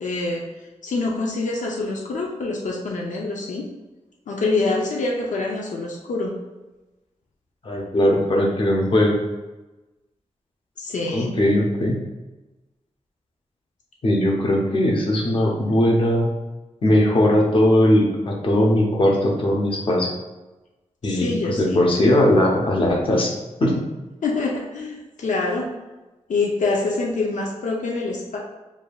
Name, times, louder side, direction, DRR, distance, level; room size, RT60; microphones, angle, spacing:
voice 1, 0.0-0.5 0.8-3.7 4.3-6.4 10.8-11.4 21.0-21.8 24.2-25.7 26.3-28.4, left 3 dB, 85° left, -1 dB, 0.6 m, -25 dB
voice 2, 7.6-9.2 11.1-12.0 14.0-16.3 16.8-20.1 21.0-23.3 23.6-23.9, left 1 dB, 45° left, -1 dB, 0.8 m, -19 dB
7.1 x 2.6 x 2.3 m, 1.1 s
wide cardioid pair, 150°, 12 cm